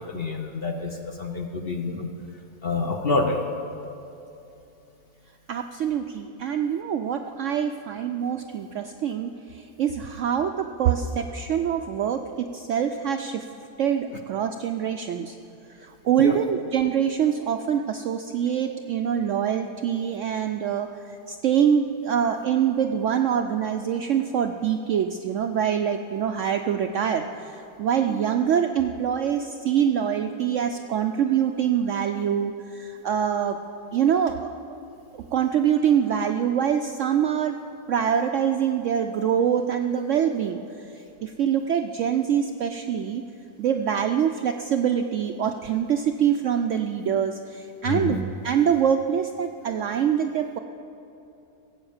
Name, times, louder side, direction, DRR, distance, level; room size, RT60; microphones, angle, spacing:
voice 1, 0.0-2.1 2.6-3.4 16.2-16.4 47.9-48.2, left 3 dB, 45° left, 3 dB, 0.8 m, -27 dB
voice 2, 5.5-13.5 13.8-15.4 15.8-20.9 21.3-33.6 33.9-34.5 35.1-37.6 37.9-40.9 41.2-43.2 43.6-50.6, right 8 dB, 70° right, 5 dB, 0.7 m, -25 dB
16.5 x 7.8 x 7.1 m, 2.8 s
omnidirectional pair, 1.7 m